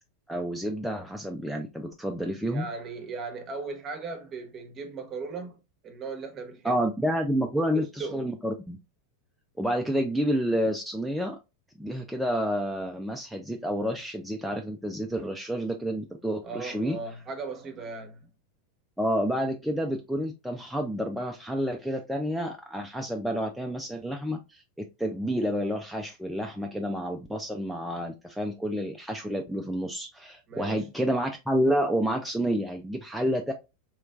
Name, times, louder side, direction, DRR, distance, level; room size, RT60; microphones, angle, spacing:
voice 1, 0.3-2.7 6.6-8.8 9.6-11.4 11.8-17.0 19.0-24.6 25.0-33.5, equal, ahead, 0.5 m, -29 dB
voice 2, 2.4-5.6 5.8-6.8 7.6-8.3 16.4-18.3 30.5-30.9, right 4 dB, 35° right, 1.0 m, -37 dB
3.1 x 3.0 x 2.3 m
hypercardioid pair, 90°, 0 cm